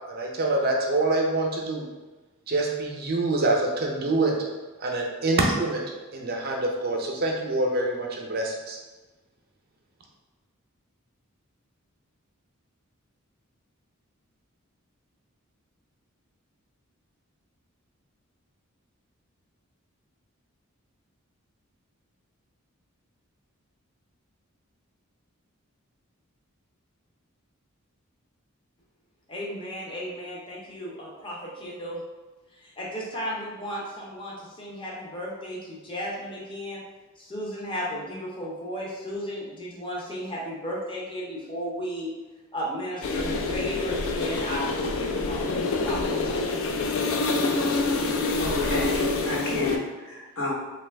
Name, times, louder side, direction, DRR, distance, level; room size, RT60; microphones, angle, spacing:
voice 1, 0.1-1.8 2.5-4.4 4.8-5.8 6.1-8.8, right 2 dB, 45° right, 0 dB, 0.5 m, -25 dB
voice 2, 29.3-32.0 32.5-36.8 37.2-42.1 42.5-45.5 45.8-46.6, equal, 25° left, -5 dB, 0.6 m, -34 dB
sound 1, 43.0-49.8, left 3 dB, 65° left, 0.3 m, -26 dB
voice 3, 48.4-50.5, left 2 dB, 80° left, -7 dB, 1.2 m, -31 dB
3.0 x 2.3 x 3.3 m, 1.2 s
head